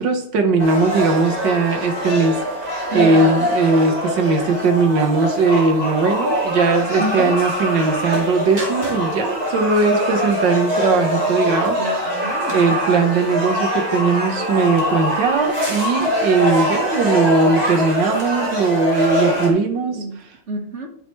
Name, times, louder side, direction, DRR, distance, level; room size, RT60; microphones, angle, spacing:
voice 1, 0.0-11.8 12.5-20.0, right 4 dB, 75° right, 5 dB, 1.9 m, -19 dB
sound 1, 0.6-19.5, equal, 20° right, 2.5 m, -23 dB
voice 2, 2.9-3.6 7.0-7.4 11.7-12.7 19.8-20.2 20.5-20.9, right 2 dB, 40° right, 2 dB, 1.6 m, -28 dB
13.0 x 5.8 x 3.2 m, 0.63 s
omnidirectional pair, 2.0 m